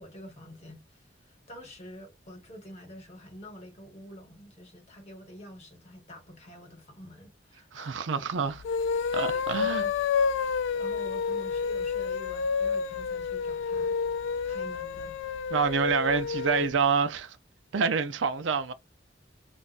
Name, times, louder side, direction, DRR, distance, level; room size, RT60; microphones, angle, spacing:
voice 1, 0.0-8.2 9.3-9.9 10.3-14.0 14.4-15.1, equal, 35° left, 1.4 m, -47 dB
voice 2, 7.7-8.6 9.1-9.8 15.5-17.4 17.7-18.7, right 5 dB, 90° right, 0.5 m, -27 dB
sound 1, 8.6-16.7, left 6 dB, 80° left, 0.3 m, -29 dB
2.5 x 2.4 x 4.0 m
head